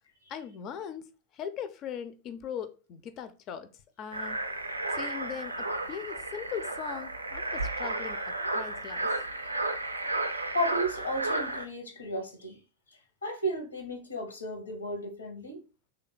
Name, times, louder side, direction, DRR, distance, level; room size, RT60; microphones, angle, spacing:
voice 1, 0.3-1.1 1.3-3.7 4.0-4.4 4.9-8.2 8.5-9.1, left 8 dB, 35° left, 0.4 m, -39 dB
sound 1, 4.1-11.7, right 2 dB, 80° right, 0.3 m, -33 dB
voice 2, 10.3-12.6 13.2-15.6, equal, 80° left, 0.8 m, -34 dB
3.2 x 2.3 x 3.7 m
figure-of-eight pair, 90°, 0 cm